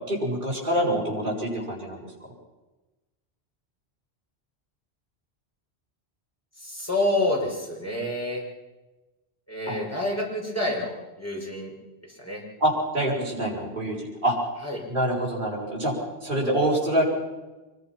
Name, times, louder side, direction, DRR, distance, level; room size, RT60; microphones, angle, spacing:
voice 1, 0.0-2.0 9.7-9.8 12.6-14.0 14.2-14.4 14.9-15.9 16.2-17.0, right 1 dB, 50° right, -4 dB, 6.6 m, -25 dB
voice 2, 6.6-8.4 9.5-11.7 12.1-12.4 14.6-14.8, left 1 dB, 15° left, -3 dB, 6.3 m, -28 dB
25.5 x 22.0 x 6.1 m, 1.2 s
omnidirectional pair, 1.1 m